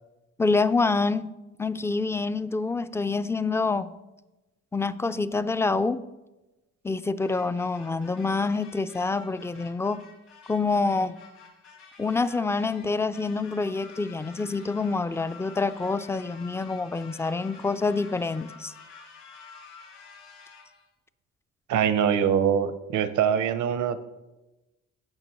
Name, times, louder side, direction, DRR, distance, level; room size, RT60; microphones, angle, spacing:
voice 1, 0.4-1.3 1.6-3.9 4.7-6.0 6.8-10.0 10.5-11.2 12.0-18.7, left 3 dB, 10° left, 13 dB, 0.3 m, -26 dB
sound 1, 7.2-20.9, left 5 dB, 70° left, 3.8 m, -49 dB
voice 2, 21.7-24.1, right 8 dB, 75° right, 12 dB, 0.8 m, -23 dB
16.0 x 6.1 x 3.0 m, 1.0 s
cardioid pair, 90°, 30 cm